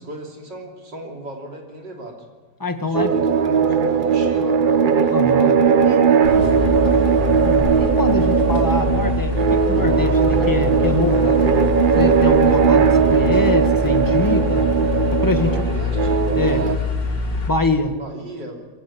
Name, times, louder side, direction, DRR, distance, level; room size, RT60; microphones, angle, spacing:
voice 1, 0.0-2.2 2.8-4.8 6.4-7.3 15.4-16.9 18.0-18.6, right 1 dB, 90° right, 0 dB, 3.9 m, -36 dB
voice 2, 2.6-3.1 5.1-5.6 5.8-6.1 7.4-11.5 12.0-14.7 15.1-15.6 16.3-16.6 17.5-18.0, left 2 dB, 10° left, 6 dB, 1.5 m, -24 dB
sound 1, 2.9-16.8, right 6 dB, 45° right, 0.6 m, -18 dB
sound 2, 6.2-17.5, left 4 dB, 90° left, 4.1 m, -24 dB
22.5 x 16.5 x 8.7 m, 1.3 s
omnidirectional pair, 1.8 m